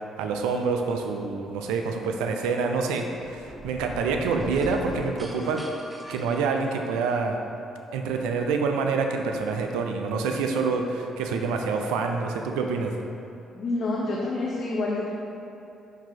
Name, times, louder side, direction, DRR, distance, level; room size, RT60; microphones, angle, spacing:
voice 1, 0.2-5.6 6.1-7.4 7.9-12.9, right 4 dB, 85° right, 3 dB, 0.3 m, -27 dB
sound 1, 3.1-7.1, right 1 dB, 10° right, 0.6 m, -41 dB
voice 2, 13.5-15.1, left 2 dB, 55° left, -4 dB, 0.5 m, -28 dB
4.6 x 2.8 x 3.9 m, 2.8 s
supercardioid pair, 60°, 0 cm